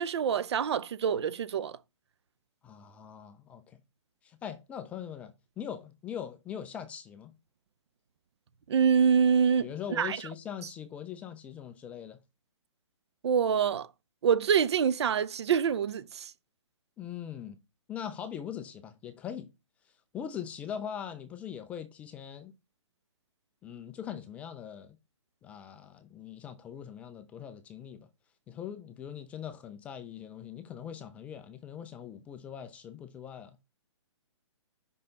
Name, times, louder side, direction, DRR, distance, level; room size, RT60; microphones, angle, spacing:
voice 1, 0.0-1.7 8.7-9.7 10.0-10.2 13.2-13.9 14.2-16.3, right 7 dB, 60° right, 0.7 m, -25 dB
voice 2, 2.6-3.8 4.2-7.3 9.6-12.2 17.0-17.6 17.9-19.5 20.1-22.5 23.6-25.0 25.4-28.1 28.5-33.5, left 9 dB, 10° left, 0.3 m, -41 dB
5.6 x 5.4 x 3.9 m
hypercardioid pair, 155°, 16 cm